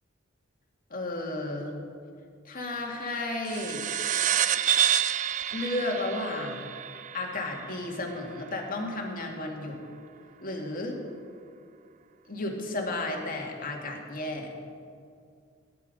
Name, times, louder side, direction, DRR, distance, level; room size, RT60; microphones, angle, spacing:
voice 1, 0.9-1.8 2.4-3.9 5.5-6.7 7.1-9.8 10.4-11.0 12.3-14.5, left 2 dB, 45° left, 1 dB, 2.1 m, -33 dB
sound 1, 3.5-8.4, right 9 dB, 40° right, 0.4 m, -28 dB
17.5 x 10.0 x 5.3 m, 2.3 s
head